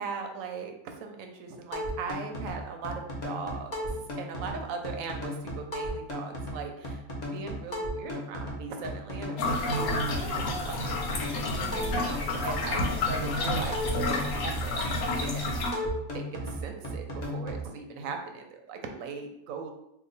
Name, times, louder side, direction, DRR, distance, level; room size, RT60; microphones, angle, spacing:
voice 1, 0.0-7.0 7.3-19.7, right 5 dB, 70° right, 4 dB, 0.9 m, -39 dB
sound 1, 1.7-17.7, equal, 40° left, 0.7 m, -35 dB
sound 2, 9.4-15.7, left 2 dB, 85° left, 1.1 m, -30 dB
2.9 x 2.3 x 3.9 m, 0.82 s
omnidirectional pair, 1.5 m